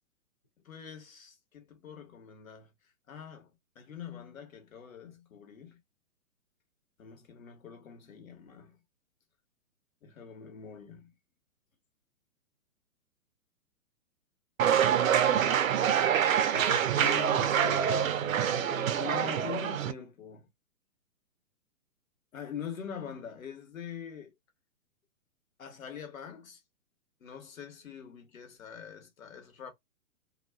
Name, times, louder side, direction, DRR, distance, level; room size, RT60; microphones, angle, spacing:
voice 1, 0.6-2.7 3.1-5.8 7.0-8.8 10.0-11.1 19.0-20.5 22.3-24.3 25.6-26.6 27.2-29.7, left 7 dB, 70° left, 1.2 m, -44 dB
sound 1, 14.6-19.9, right 9 dB, 70° right, 0.5 m, -26 dB
voice 2, 16.5-19.0, left 1 dB, 20° left, 0.3 m, -40 dB
2.3 x 2.3 x 2.2 m
hypercardioid pair, 130°, 42 cm